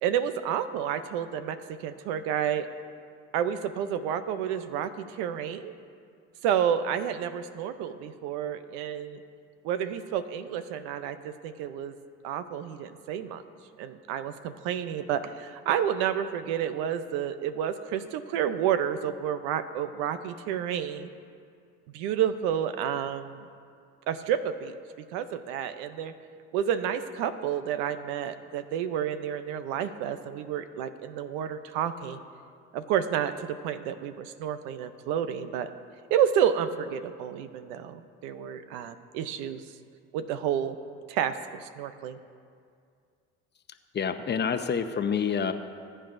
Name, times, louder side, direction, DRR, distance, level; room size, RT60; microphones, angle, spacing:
voice 1, 0.0-2.7 3.3-5.7 6.4-9.2 9.6-11.9 12.2-13.4 13.8-21.1 21.9-23.5 24.1-24.7 25.1-26.1 26.5-32.2 32.7-35.7 36.1-39.6 40.1-40.8 41.1-42.2, right 9 dB, 90° right, 11 dB, 0.7 m, -30 dB
voice 2, 43.9-45.5, left 6 dB, 35° left, 8 dB, 0.8 m, -27 dB
20.5 x 8.8 x 2.6 m, 2.2 s
supercardioid pair, 80°, 30 cm